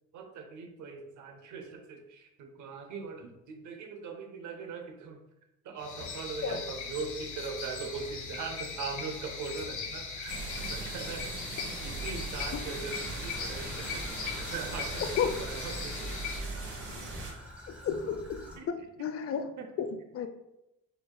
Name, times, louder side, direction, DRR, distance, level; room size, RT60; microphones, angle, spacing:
voice 1, 0.1-5.2 5.6-16.2 18.6-18.7 19.6-19.7, right 5 dB, 75° right, 4 dB, 0.7 m, -41 dB
sound 1, 5.8-16.4, left 5 dB, 75° left, 1.0 m, -39 dB
sound 2, 10.3-17.3, right 2 dB, 45° right, 1.4 m, -40 dB
Traffic noise roadway noise / Trickle dribble, 12.8-18.6, right 1 dB, 5° right, 1.0 m, -48 dB
voice 2, 17.7-18.6 19.0-19.5 19.8-20.3, left 7 dB, 50° left, 7 dB, 0.4 m, -32 dB
4.8 x 2.8 x 2.2 m, 0.90 s
cardioid pair, 90°, 30 cm